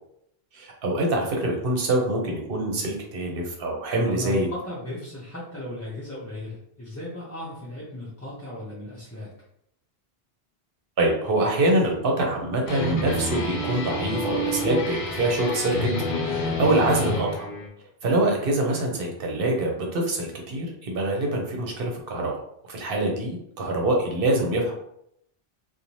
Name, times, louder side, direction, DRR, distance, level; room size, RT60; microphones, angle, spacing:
voice 1, 0.5-4.5 11.0-17.5 18.0-22.3 22.7-24.7, right 1 dB, 65° right, 0 dB, 0.8 m, -25 dB
voice 2, 4.0-9.3, left 1 dB, 20° left, -9 dB, 0.5 m, -36 dB
sound 1, 12.7-17.7, left 1 dB, 60° left, 0.7 m, -28 dB
2.6 x 2.2 x 3.0 m, 0.75 s
omnidirectional pair, 1.1 m